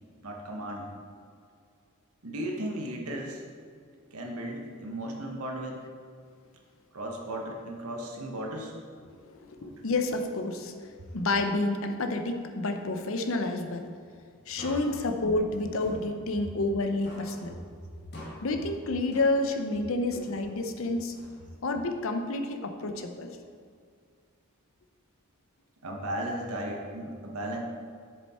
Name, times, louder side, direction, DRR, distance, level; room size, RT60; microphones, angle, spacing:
voice 1, 0.2-0.9 2.2-3.4 4.1-5.9 6.9-8.7 9.6-9.7 25.8-27.6, right 1 dB, 80° right, 1 dB, 1.2 m, -35 dB
voice 2, 9.1-13.8 14.5-17.6 18.4-21.1 21.6-23.4, left 2 dB, 65° left, 5 dB, 0.7 m, -29 dB
sound 1, 14.6-16.8 17.0-19.7 20.1-21.8, left 1 dB, 45° left, 1.8 m, -48 dB
7.4 x 6.8 x 4.3 m, 2.2 s
head